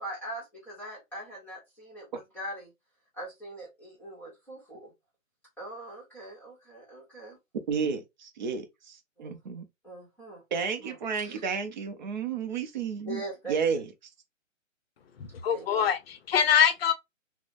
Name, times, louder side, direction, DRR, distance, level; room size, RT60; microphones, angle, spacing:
voice 1, 0.0-2.7 3.1-4.9 5.6-7.4 9.2-9.4 9.8-11.4 13.1-13.8 15.5-15.9, right 1 dB, 5° left, 0.9 m, -42 dB
voice 2, 7.7-9.6 10.5-13.2 13.5-13.9, right 6 dB, 35° right, 0.5 m, -31 dB
voice 3, 15.2-16.9, left 8 dB, 50° left, 0.6 m, -24 dB
3.1 x 2.0 x 2.4 m
hypercardioid pair, 145°, 40 cm